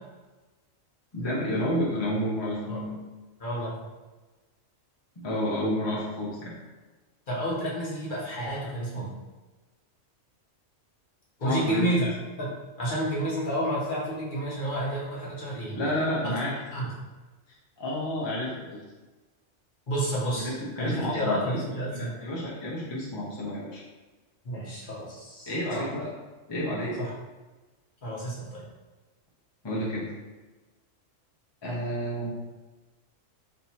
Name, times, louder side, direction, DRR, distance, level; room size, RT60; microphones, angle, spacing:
voice 1, 1.1-3.0 5.2-6.5 11.4-11.9 15.7-16.5 17.8-18.8 20.4-23.8 25.5-26.1 26.5-27.0 29.6-30.1 31.6-32.3, equal, 25° left, -6 dB, 0.7 m, -30 dB
voice 2, 3.4-3.7 7.3-9.1 11.4-12.5 12.8-15.8 16.2-16.3 16.7-16.9 19.9-20.5 20.8-22.1 24.4-25.9 27.0-27.1 28.0-28.6, right 1 dB, 45° left, -6 dB, 1.1 m, -30 dB
3.4 x 2.9 x 4.2 m, 1.2 s
omnidirectional pair, 1.3 m